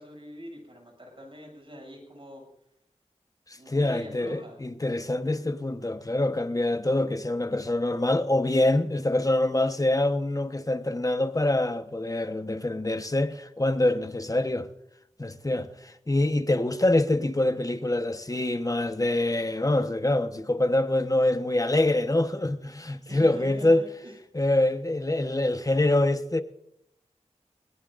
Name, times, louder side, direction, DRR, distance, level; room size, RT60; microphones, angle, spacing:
voice 1, 0.0-2.4 3.5-4.6 23.1-24.2, equal, 45° right, 7.3 m, -44 dB
voice 2, 3.7-14.7 15.2-23.8 24.3-26.4, left 1 dB, 30° left, 1.1 m, -25 dB
21.0 x 18.5 x 2.6 m
wide cardioid pair, 60°, 12 cm